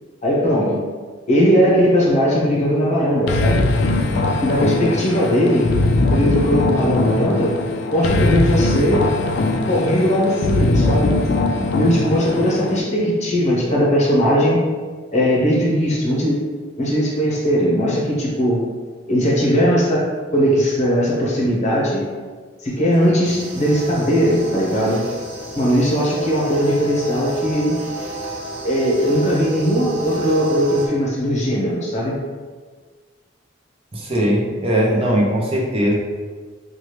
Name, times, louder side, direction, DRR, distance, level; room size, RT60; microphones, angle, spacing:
voice 1, 0.2-0.8 1.3-3.7 4.4-5.7 6.1-7.5 7.9-9.0 9.7-11.1 11.7-14.6 15.1-16.4 16.8-18.6 19.1-20.0 20.3-22.0 22.6-25.0 25.6-27.8 28.6-32.1, equal, 35° left, -4 dB, 0.8 m, -18 dB
sound 1, 3.3-12.8, left 2 dB, 60° left, 0.3 m, -20 dB
sound 2, 23.2-30.9, right 1 dB, 75° right, 0.7 m, -32 dB
voice 2, 33.9-35.9, equal, 30° right, -3 dB, 0.6 m, -19 dB
3.0 x 2.3 x 3.2 m, 1.5 s
head